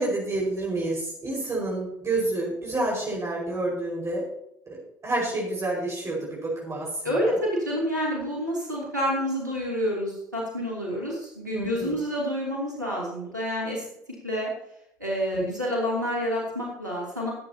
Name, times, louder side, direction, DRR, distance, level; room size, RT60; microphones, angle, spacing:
voice 1, 0.0-4.3 4.7-7.4 11.5-12.0 15.3-15.4, right 2 dB, 30° right, -3 dB, 5.2 m, -29 dB
voice 2, 7.0-13.8 14.2-14.5 15.0-17.3, equal, 90° right, -4 dB, 3.0 m, -28 dB
19.5 x 8.6 x 2.9 m, 0.75 s
figure-of-eight pair, 55°, 9 cm